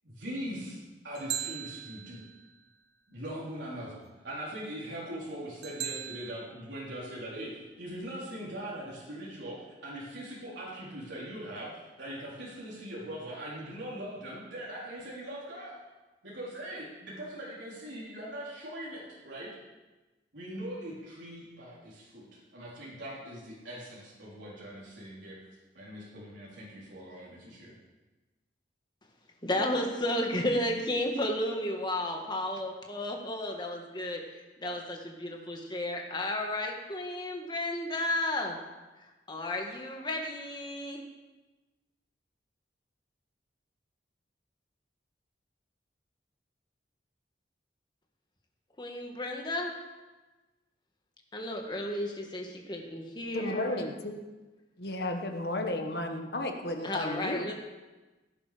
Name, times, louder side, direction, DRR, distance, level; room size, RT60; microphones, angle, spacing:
voice 1, 0.0-2.2 3.1-11.7 12.0-15.7 16.2-19.5 20.3-25.4 25.7-27.7, right 1 dB, 85° right, -7 dB, 3.9 m, -41 dB
sound 1, 1.1-2.5 5.6-6.3, right 10 dB, 65° right, 0.9 m, -38 dB
voice 2, 29.4-38.6 39.0-41.0 48.8-49.7 51.3-53.9 56.8-57.5, left 1 dB, 25° left, 2 dB, 1.8 m, -33 dB
voice 3, 53.3-54.1 54.8-57.5, left 1 dB, 60° left, 5 dB, 1.5 m, -33 dB
17.0 x 10.0 x 5.1 m, 1.2 s
head